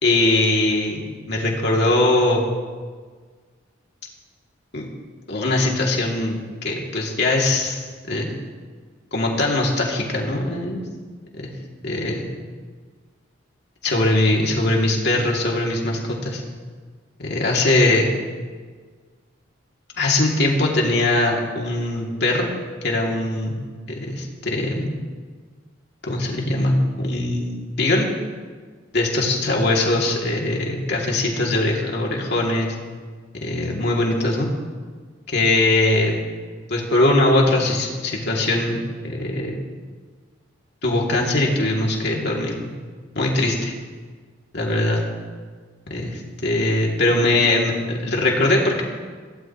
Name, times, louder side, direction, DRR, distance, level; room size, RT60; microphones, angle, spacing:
voice 1, 0.0-2.4 4.7-4.9 5.3-8.3 9.1-10.9 11.3-11.5 11.8-12.2 13.8-16.4 17.2-18.1 20.0-22.5 22.8-23.6 23.9-24.9 26.1-28.1 28.9-32.8 33.4-34.5 35.3-36.1 36.7-39.6 40.8-42.7 43.1-43.7 44.5-45.0 45.9-48.8, left 2 dB, 60° left, -1 dB, 2.6 m, -21 dB
22.0 x 16.5 x 3.1 m, 1.5 s
head